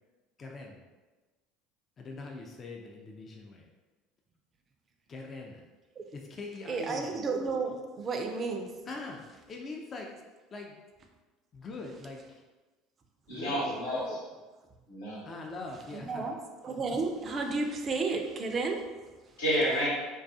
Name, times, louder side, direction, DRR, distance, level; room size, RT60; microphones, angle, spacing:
voice 1, 0.4-0.8 2.0-3.6 5.1-5.6 6.1-7.2 8.9-10.1 10.5-10.8 11.5-12.4 13.3-13.8 15.2-16.3, left 3 dB, 35° left, 1 dB, 0.3 m, -42 dB
voice 2, 6.7-8.7 13.9-14.2 15.9-16.3 16.6-18.8, right 4 dB, 40° right, 4 dB, 0.3 m, -32 dB
voice 3, 13.3-14.2 14.9-15.3 19.4-19.9, equal, 85° left, -8 dB, 1.0 m, -30 dB
2.3 x 2.3 x 2.5 m, 1.2 s
hypercardioid pair, 75°, 0 cm